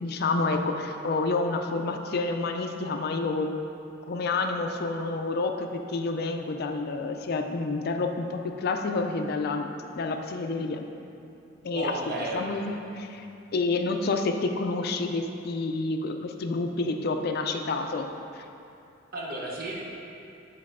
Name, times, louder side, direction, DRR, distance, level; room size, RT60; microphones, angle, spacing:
voice 1, 0.0-3.6 4.1-9.7 9.9-10.9 11.6-12.0 12.3-13.3 13.5-18.1 18.4-18.5, left 3 dB, 55° left, 5 dB, 0.4 m, -29 dB
voice 2, 11.7-12.8 19.1-19.8, right 2 dB, 50° right, -3 dB, 1.0 m, -33 dB
8.7 x 4.1 x 3.6 m, 2.7 s
head